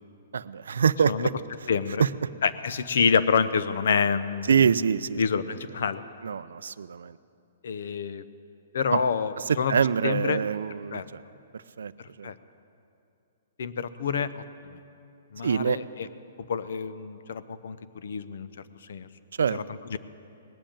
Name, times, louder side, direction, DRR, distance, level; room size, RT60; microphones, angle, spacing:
voice 1, 0.3-1.3 2.0-2.1 4.4-5.2 6.2-7.2 8.9-9.0 9.4-11.2 11.5-11.9 12.2-12.3 15.4-15.8 19.4-19.6, right 7 dB, 90° right, 16 dB, 0.4 m, -25 dB
voice 2, 1.7-2.0 2.4-4.5 5.2-6.0 7.6-8.2 8.7-9.7 10.0-10.4 10.9-11.0 12.0-12.3 13.6-14.4 14.7-14.8 15.3-15.8 16.5-18.5 18.9-19.1 19.5-19.6 19.9-20.0, left 6 dB, 65° left, 14 dB, 0.7 m, -27 dB
19.0 x 7.7 x 8.8 m, 2.7 s
hypercardioid pair, 170°, 0 cm